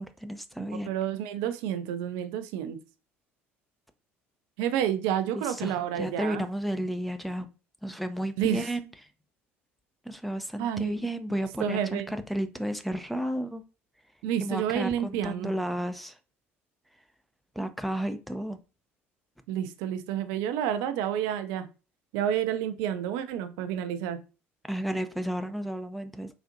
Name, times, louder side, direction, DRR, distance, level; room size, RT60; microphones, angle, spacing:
voice 1, 0.0-0.9 5.3-7.5 7.8-8.9 10.0-13.6 14.4-16.2 17.6-18.6 24.7-26.3, equal, ahead, 8 dB, 0.4 m, -32 dB
voice 2, 0.8-2.8 4.6-6.5 8.4-8.7 10.6-11.0 11.6-12.1 14.2-15.5 19.5-21.7 22.1-24.2, right 10 dB, 65° right, 10 dB, 0.4 m, -29 dB
3.8 x 2.4 x 2.5 m, 0.32 s
hypercardioid pair, 60°, 6 cm